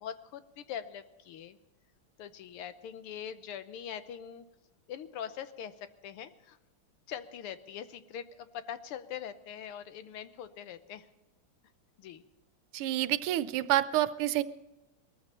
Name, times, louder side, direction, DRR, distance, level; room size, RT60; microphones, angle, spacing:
voice 1, 0.0-1.6 2.2-4.5 4.9-5.7 6.0-6.6 7.1-11.1 12.0-12.2, left 9 dB, 80° left, 11 dB, 1.8 m, -42 dB
voice 2, 12.7-14.4, right 14 dB, 90° right, 15 dB, 1.6 m, -28 dB
19.0 x 14.0 x 4.2 m, 0.99 s
omnidirectional pair, 2.4 m